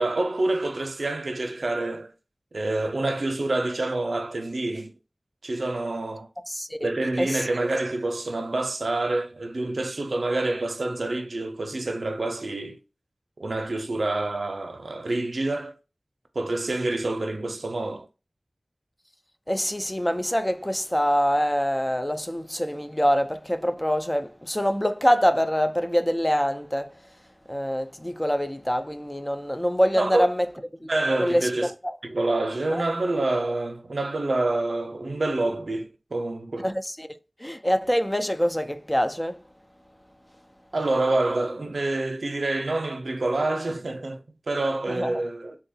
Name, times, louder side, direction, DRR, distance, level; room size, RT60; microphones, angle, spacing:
voice 1, 0.0-2.1 2.5-4.9 5.4-6.3 6.8-12.8 13.4-15.7 16.3-18.1 29.9-30.3 30.9-31.7 32.0-36.7 40.7-45.6, right 2 dB, 85° right, 0.5 m, -27 dB
voice 2, 6.5-6.9 7.2-7.4 19.5-26.9 27.5-30.5 30.8-30.9 31.2-31.9 32.7-32.8 36.6-37.1 37.4-39.4 44.9-45.1, equal, 15° left, 0.4 m, -25 dB
3.7 x 2.3 x 2.6 m
wide cardioid pair, 55°, 0 cm